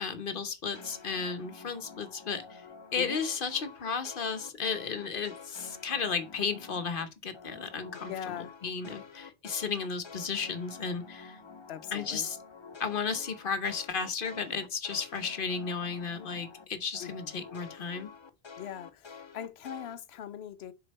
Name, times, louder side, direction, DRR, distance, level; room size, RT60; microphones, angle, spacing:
voice 1, 0.0-2.6 2.9-11.4 11.9-12.4 12.8-18.1, left 5 dB, 60° left, 1.0 m, -34 dB
sound 1, 0.7-7.0 7.3-16.6 16.9-19.9, left 5 dB, 35° left, 0.6 m, -49 dB
voice 2, 8.1-8.6 11.7-12.3 17.0-17.3 18.6-20.7, left 9 dB, 85° left, 0.9 m, -41 dB
6.7 x 4.3 x 4.1 m
omnidirectional pair, 1.0 m